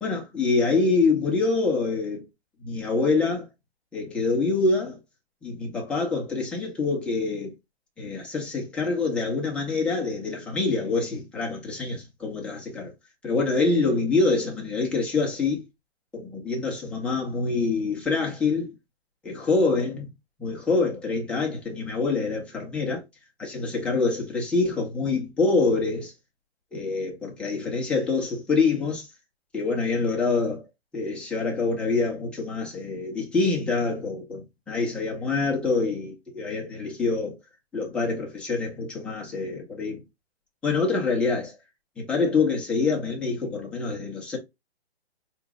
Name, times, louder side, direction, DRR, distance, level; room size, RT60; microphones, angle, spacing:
voice 1, 0.0-2.2 2.6-3.5 3.9-5.0 5.4-7.5 8.0-12.9 13.2-15.6 16.1-18.7 19.2-20.1 20.4-23.0 23.4-26.1 26.7-29.1 29.5-30.6 30.9-37.4 37.7-40.0 40.6-41.6 42.0-44.4, left 3 dB, 5° left, 0.5 m, -25 dB
4.6 x 3.0 x 3.5 m
hypercardioid pair, 150°, 32 cm